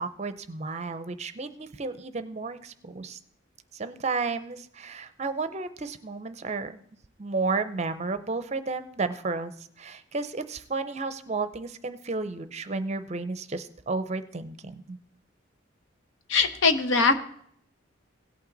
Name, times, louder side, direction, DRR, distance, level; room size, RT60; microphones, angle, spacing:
voice 1, 0.0-3.2 3.7-6.8 7.2-9.5 9.8-15.0, right 3 dB, 35° right, 11 dB, 0.6 m, -32 dB
voice 2, 16.3-17.2, left 4 dB, 70° left, 8 dB, 0.9 m, -21 dB
17.0 x 5.8 x 3.9 m, 0.65 s
head